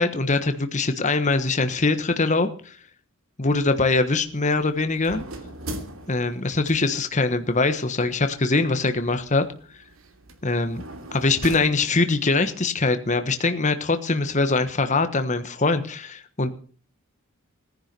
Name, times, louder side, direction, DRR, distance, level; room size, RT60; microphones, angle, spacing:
voice 1, 0.0-2.8 3.4-5.2 6.1-9.4 10.4-10.8 11.1-16.5, left 3 dB, 35° left, 9 dB, 1.3 m, -23 dB
sound 1, 3.5-12.4, right 1 dB, 70° right, 2.8 m, -42 dB
18.5 x 10.5 x 6.8 m, 0.42 s
head